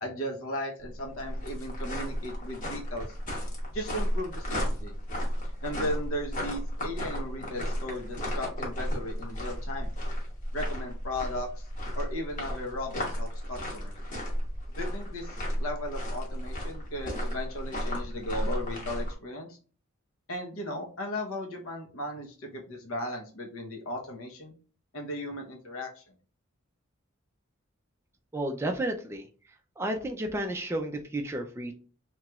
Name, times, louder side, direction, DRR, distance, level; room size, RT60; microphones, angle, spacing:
voice 1, 0.0-3.2 3.7-4.9 5.6-9.9 10.5-11.6 11.9-13.9 14.7-19.6 20.3-24.5 24.9-26.0, left 1 dB, 80° left, 1 dB, 0.9 m, -36 dB
sound 1, 0.8-19.1, equal, 40° left, 1.0 m, -34 dB
voice 2, 28.3-29.3 29.8-31.7, right 1 dB, 10° right, 3 dB, 0.3 m, -32 dB
2.9 x 2.9 x 2.3 m, 0.39 s
head